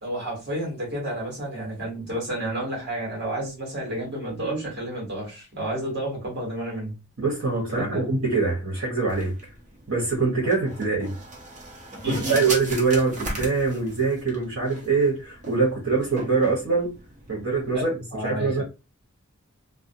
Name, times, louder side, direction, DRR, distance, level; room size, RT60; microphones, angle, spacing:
voice 1, 0.0-6.9 7.7-8.1 12.0-12.4 17.7-18.6, right 1 dB, 50° right, 1.3 m, -31 dB
voice 2, 7.2-9.3 9.9-11.1 12.1-16.9 17.3-18.0 18.2-18.6, right 4 dB, 65° right, 1.0 m, -24 dB
sound 1, 9.1-17.8, right 1 dB, 35° right, 0.7 m, -37 dB
2.4 x 2.1 x 2.6 m
head